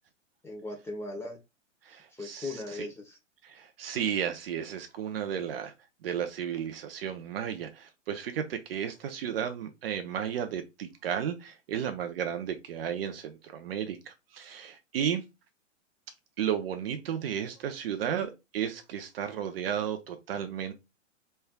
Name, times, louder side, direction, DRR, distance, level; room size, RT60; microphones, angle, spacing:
voice 1, 0.4-1.4 2.1-3.2, left 2 dB, 5° left, 1.0 m, -38 dB
voice 2, 1.9-2.8 3.4-5.7 6.0-15.2 16.4-20.7, right 9 dB, 50° right, 0.7 m, -33 dB
4.3 x 3.4 x 2.3 m
figure-of-eight pair, 115°, 38 cm